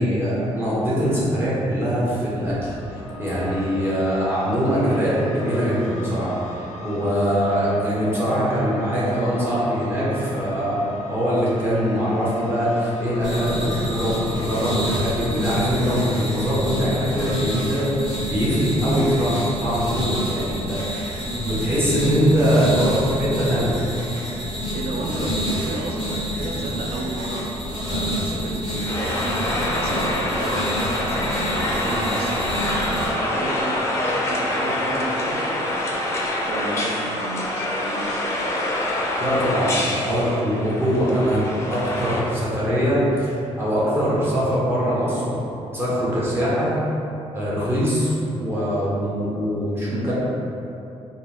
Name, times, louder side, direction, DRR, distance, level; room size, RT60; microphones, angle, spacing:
voice 1, 0.0-17.9 18.2-23.8 39.2-45.4 45.7-46.7 47.3-50.1, equal, 20° right, -9 dB, 0.9 m, -22 dB
sound 1, 2.4-16.8, left 1 dB, 85° left, 0.4 m, -39 dB
sound 2, 13.2-33.1, equal, 40° right, 1.5 m, -28 dB
voice 2, 24.7-29.4 29.8-32.4 32.9-36.0 36.5-38.2, right 2 dB, 65° right, -1 dB, 0.5 m, -33 dB
sound 3, 28.9-42.2, left 1 dB, 25° left, 0.4 m, -26 dB
3.7 x 2.5 x 3.5 m, 2.8 s
cardioid pair, 180°, 11 cm